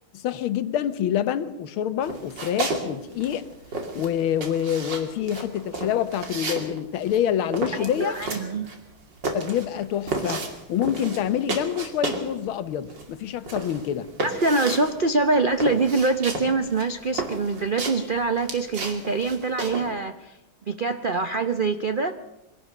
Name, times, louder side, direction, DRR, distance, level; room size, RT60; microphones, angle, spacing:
voice 1, 0.1-3.5 4.0-8.2 9.3-10.4 10.7-14.1, left 10 dB, 80° left, 13 dB, 1.8 m, -26 dB
sound 1, 2.0-2.9 3.1-12.3 12.6-19.9, right 3 dB, 60° right, 3.1 m, -32 dB
voice 2, 7.8-8.7 14.2-20.4 20.7-22.2, right 3 dB, 90° right, 9 dB, 0.4 m, -24 dB
23.0 x 17.0 x 6.6 m, 0.91 s
omnidirectional pair, 2.3 m